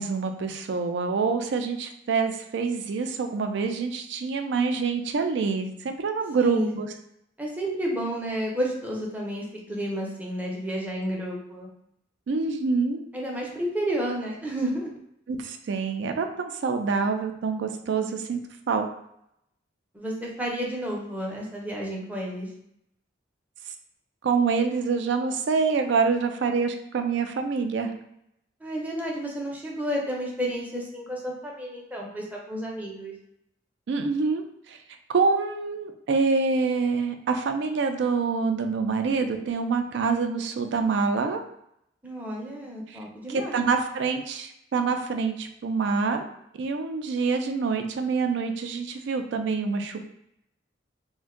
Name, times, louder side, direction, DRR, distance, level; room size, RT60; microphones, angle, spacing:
voice 1, 0.0-6.9 12.3-13.0 15.3-18.4 18.7-18.9 24.2-27.9 33.9-34.8 35.1-41.4 42.9-43.0 43.3-46.2 46.5-50.0, right 4 dB, 65° right, 6 dB, 0.3 m, -26 dB
voice 2, 6.4-6.8 7.4-11.7 13.1-14.9 19.9-22.5 28.6-33.1 42.0-43.6, equal, 10° right, -2 dB, 0.5 m, -31 dB
2.5 x 2.2 x 3.6 m, 0.76 s
head